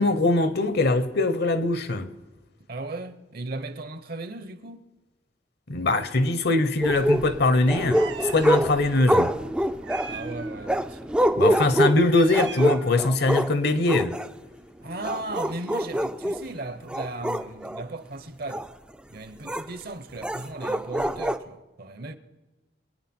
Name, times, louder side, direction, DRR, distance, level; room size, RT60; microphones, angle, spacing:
voice 1, 0.0-2.1 5.7-9.3 11.4-14.2, left 2 dB, 60° left, 0.9 m, -22 dB
voice 2, 2.7-4.9 10.1-11.2 14.8-18.7 19.1-22.2, right 2 dB, 55° right, 1.0 m, -36 dB
sound 1, 6.8-13.5 13.9-14.3 14.9-16.4 16.9-17.8 18.5-18.7 19.5-19.6 20.2-21.4, equal, 5° right, 0.4 m, -25 dB
Meow, 7.9-8.6 9.8-10.7 12.0-13.1, right 7 dB, 85° right, 1.0 m, -40 dB
23.0 x 9.0 x 4.5 m
head